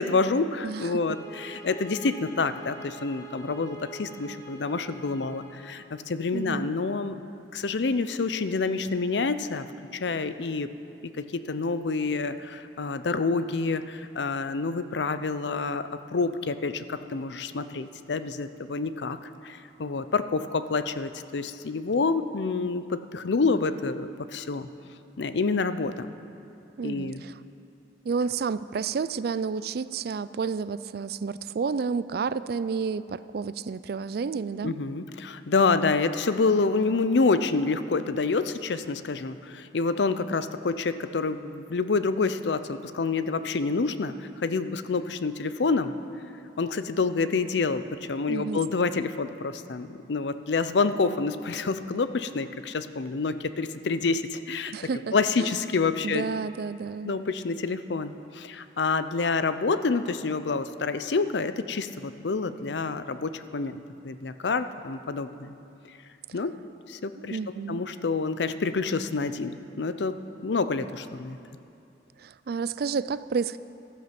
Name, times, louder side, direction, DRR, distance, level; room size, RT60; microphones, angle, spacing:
voice 1, 0.0-7.2 7.5-9.6 9.9-10.7 11.2-19.2 19.4-24.7 25.2-26.1 26.8-27.2 34.6-45.9 46.6-54.7 55.1-56.2 57.0-65.5 66.3-66.6 66.9-71.4, left 4 dB, 80° left, 12 dB, 0.6 m, -28 dB
sound 1, 0.8-5.8, right 2 dB, 20° left, 1.3 m, -45 dB
voice 2, 6.3-6.7 26.8-27.4 28.0-34.8 48.3-48.6 54.7-55.1 55.4-55.5 56.0-57.2 67.2-67.8 72.2-73.6, right 5 dB, 60° right, 16 dB, 0.4 m, -30 dB
14.5 x 12.5 x 6.0 m, 2.6 s
head